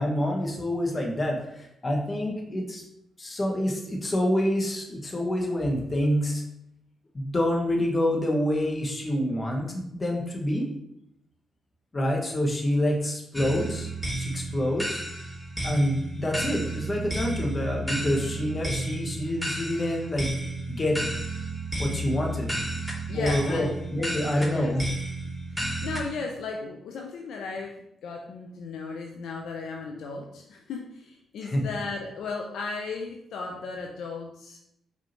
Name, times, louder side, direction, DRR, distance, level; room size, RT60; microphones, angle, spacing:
voice 1, 0.0-2.8 3.2-6.4 7.1-10.7 11.9-13.9 14.2-15.0 15.6-20.3 20.7-21.0 21.8-22.5 23.1-24.8 31.4-31.6, left 1 dB, 35° left, 1 dB, 1.1 m, -27 dB
sound 1, 13.3-26.0, right 1 dB, 5° right, 1.1 m, -32 dB
voice 2, 23.1-23.7 24.5-24.7 25.5-34.6, left 4 dB, 70° left, 1 dB, 0.4 m, -35 dB
4.8 x 2.7 x 2.9 m, 0.77 s
hypercardioid pair, 40°, 0 cm